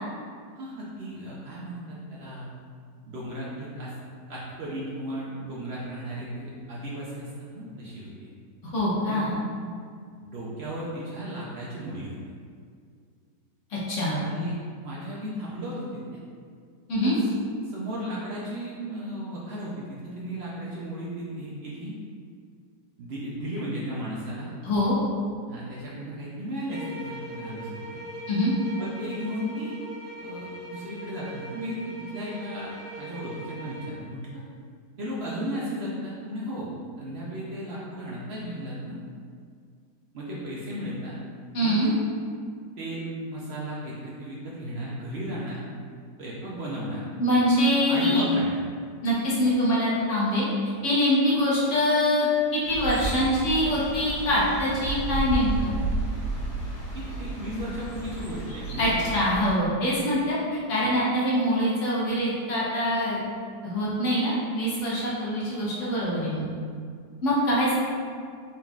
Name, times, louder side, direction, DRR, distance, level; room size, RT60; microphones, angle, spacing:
voice 1, 0.6-2.5 3.1-3.9 4.3-8.3 9.1-9.2 10.2-12.1 14.1-16.2 17.0-17.2 17.6-22.0 23.0-24.5 25.5-28.0 28.8-29.7 30.2-34.4 35.0-36.7 37.0-39.0 40.1-41.2 41.6-41.9 42.8-45.6 46.2-47.0 47.9-48.6 56.9-59.0, equal, 85° right, -7 dB, 0.5 m, -35 dB
voice 2, 8.7-9.3 13.7-14.2 16.9-17.1 24.6-25.0 28.3-28.5 41.5-41.9 47.2-48.2 49.0-50.5 50.8-55.7 58.8-60.4 60.7-63.2 63.6-66.5 67.2-67.7, equal, 50° left, -7 dB, 1.2 m, -24 dB
sound 1, 26.7-34.0, right 1 dB, 70° right, 1.5 m, -40 dB
sound 2, 52.6-59.5, right 2 dB, 75° left, 1.5 m, -32 dB
4.0 x 3.8 x 2.3 m, 2.1 s
omnidirectional pair, 1.8 m